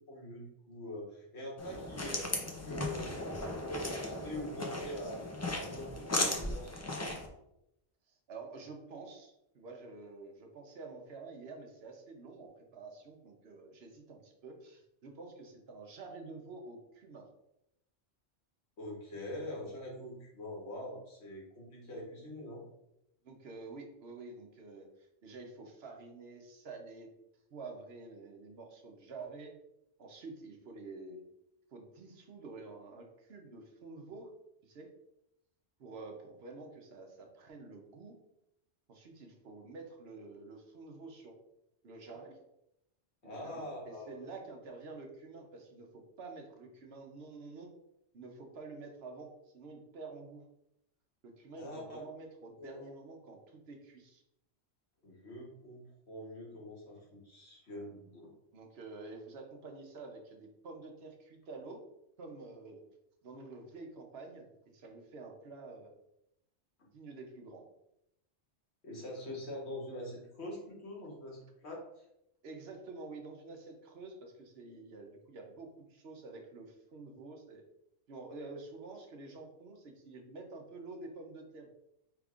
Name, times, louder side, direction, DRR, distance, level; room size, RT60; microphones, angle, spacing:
voice 1, 0.1-2.3 2.6-5.2 5.5-7.1 18.8-22.6 43.2-44.3 51.6-52.0 52.6-52.9 55.0-58.3 68.8-72.0, left 1 dB, 70° left, -3 dB, 1.6 m, -44 dB
sound 1, 1.6-7.3, left 1 dB, 25° left, 0.4 m, -37 dB
voice 2, 8.3-17.3 23.2-27.1 27.5-29.5 30.0-31.2 31.7-34.3 34.6-34.9 35.8-38.2 38.9-41.4 41.8-42.4 43.2-47.7 48.1-50.4 51.2-54.2 58.5-61.8 62.2-62.8 63.2-65.9 66.9-67.6 72.4-77.6 78.1-81.7, right 3 dB, 65° right, 2 dB, 1.0 m, -49 dB
5.1 x 3.5 x 2.4 m, 0.82 s
omnidirectional pair, 1.2 m